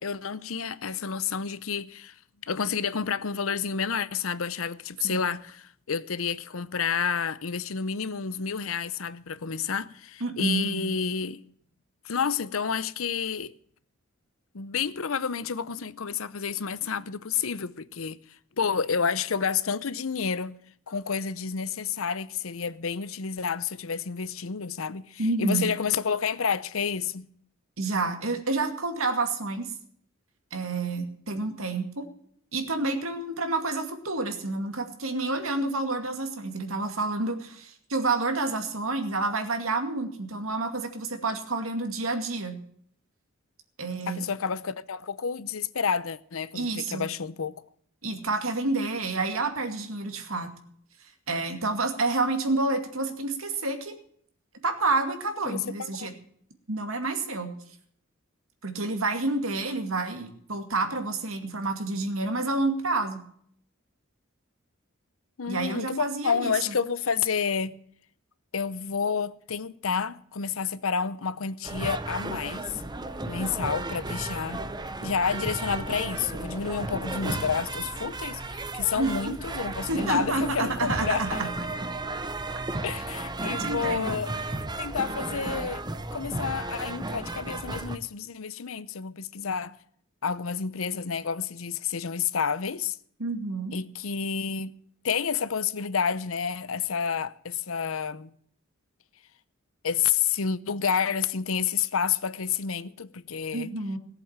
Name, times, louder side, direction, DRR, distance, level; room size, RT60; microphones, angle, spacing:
voice 1, 0.0-2.1 2.5-5.5 5.9-11.4 12.0-13.5 14.5-18.2 18.6-20.6 20.9-27.3 44.1-47.6 55.5-56.1 65.4-67.7 68.5-72.8 73.3-74.7 75.0-81.4 82.8-84.3 84.8-85.8 86.1-89.8 90.2-93.0 93.7-94.7 95.0-98.3 99.8-103.7, left 6 dB, 85° left, 0.8 m, -29 dB
voice 2, 10.2-10.8 25.2-25.7 27.8-29.7 30.5-32.1 32.5-42.6 43.8-44.3 46.5-47.1 48.0-50.5 51.3-54.0 54.6-56.1 56.7-57.5 58.6-63.2 65.5-66.7 79.0-79.3 79.9-81.5 83.5-84.2 93.2-93.7 103.5-104.0, right 3 dB, 85° right, 2.3 m, -29 dB
sound 1, 71.6-88.0, right 2 dB, 20° right, 0.9 m, -34 dB
18.0 x 7.7 x 7.5 m
head